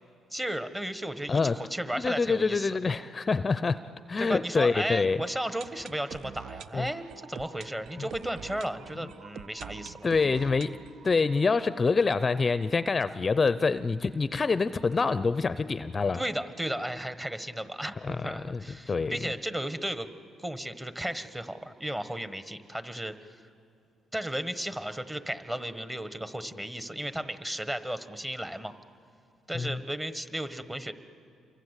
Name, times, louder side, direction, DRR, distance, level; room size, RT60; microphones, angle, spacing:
voice 1, 0.3-2.7 4.2-10.1 16.1-20.1 20.4-23.5 24.1-28.7 29.5-30.9, right 1 dB, 15° right, 11 dB, 1.3 m, -34 dB
voice 2, 2.0-3.8 4.1-5.2 6.7-6.9 9.0-9.1 10.0-10.8 11.0-16.2 18.0-19.3 29.5-29.8, left 4 dB, 30° left, 14 dB, 0.6 m, -26 dB
sound 1, 5.1-12.9 13.1-13.2 13.4-13.5 14.1-14.2, right 8 dB, 70° right, 0.6 m, -47 dB
28.0 x 24.0 x 8.2 m, 2.5 s
cardioid pair, 90°, 0 cm